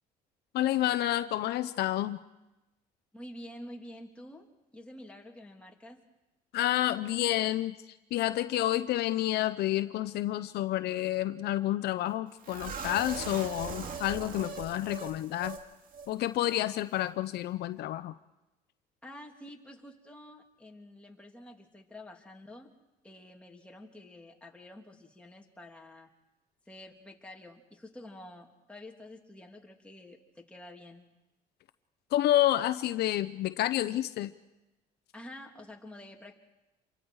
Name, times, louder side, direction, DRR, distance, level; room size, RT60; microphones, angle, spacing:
voice 1, 0.5-2.2 6.5-7.8 8.1-15.6 16.1-18.1 32.1-34.3, left 14 dB, 75° left, 12 dB, 0.7 m, -29 dB
voice 2, 3.1-6.0 19.0-22.7 23.0-26.1 26.7-31.0 35.1-36.3, left 1 dB, 5° left, 0 dB, 2.8 m, -49 dB
sound 1, 12.4-15.6 15.9-16.1 16.4-16.6, right 5 dB, 55° right, 2.3 m, -40 dB
28.0 x 24.0 x 4.8 m, 1.0 s
cardioid pair, 110°, 17 cm